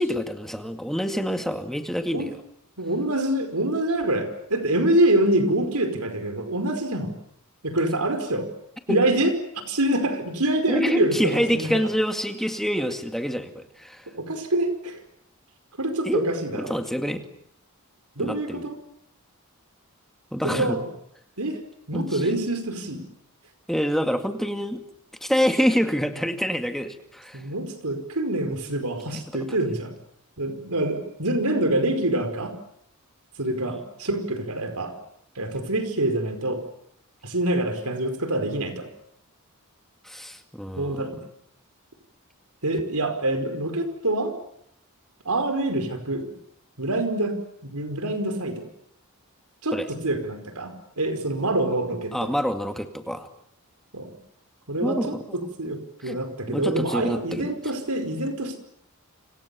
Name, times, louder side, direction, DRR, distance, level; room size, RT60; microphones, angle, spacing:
voice 1, 0.0-2.4 8.9-9.1 10.7-14.1 16.1-16.3 16.5-17.2 18.2-18.7 20.3-20.8 21.9-22.3 23.7-24.8 25.2-27.4 29.1-29.4 33.6-33.8 40.0-41.1 49.7-50.0 52.1-53.3 54.8-55.4 56.0-56.2 56.5-57.5, equal, ahead, 6 dB, 2.1 m, -27 dB
voice 2, 2.8-7.1 7.6-8.5 8.9-9.3 9.7-11.7 14.2-15.0 15.8-16.7 18.2-18.8 20.4-20.8 21.4-21.6 21.9-23.0 27.3-29.9 30.4-32.5 33.4-34.9 35.3-36.6 37.2-38.8 40.8-41.2 42.6-44.3 45.2-46.3 46.8-47.4 47.6-48.7 49.6-52.3 53.9-54.1 54.7-58.6, right 1 dB, 90° right, 8 dB, 5.0 m, -26 dB
29.5 x 26.5 x 7.1 m, 0.72 s
head